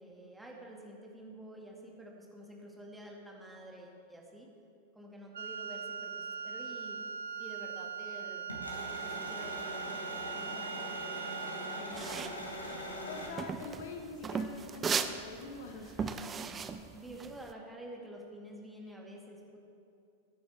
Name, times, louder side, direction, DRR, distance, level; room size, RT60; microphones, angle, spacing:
voice 1, 0.0-4.5 4.9-7.0 7.4-12.1 16.9-19.6, right 1 dB, 5° right, -1 dB, 2.3 m, -49 dB
Wind instrument woodwind instrument, 5.3-12.0, right 7 dB, 65° right, 0.4 m, -41 dB
sound 1, 8.5-13.3, equal, 85° left, 2.1 m, -41 dB
sound 2, 11.9-17.5, right 6 dB, 20° right, 0.7 m, -37 dB
voice 2, 13.1-16.3, left 3 dB, 55° left, 4 dB, 1.2 m, -45 dB
22.0 x 9.5 x 3.6 m, 2.6 s
figure-of-eight pair, 95°, 0 cm